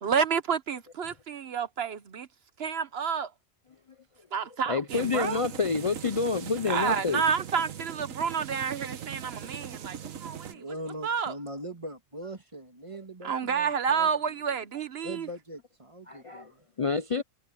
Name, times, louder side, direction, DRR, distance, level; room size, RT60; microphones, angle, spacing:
voice 1, 0.0-2.3 2.6-3.3 4.3-5.4 6.7-10.6 11.0-11.3 13.2-15.3, right 6 dB, 55° right, 0.9 m, -29 dB
voice 2, 4.7-7.3 16.1-16.5 16.8-17.2, left 4 dB, 55° left, 0.3 m, -28 dB
sound 1, 4.9-10.5, right 8 dB, 90° right, 1.5 m, -40 dB
voice 3, 10.5-14.1 15.0-16.6, right 1 dB, 25° right, 2.6 m, -41 dB
omnidirectional pair, 1.3 m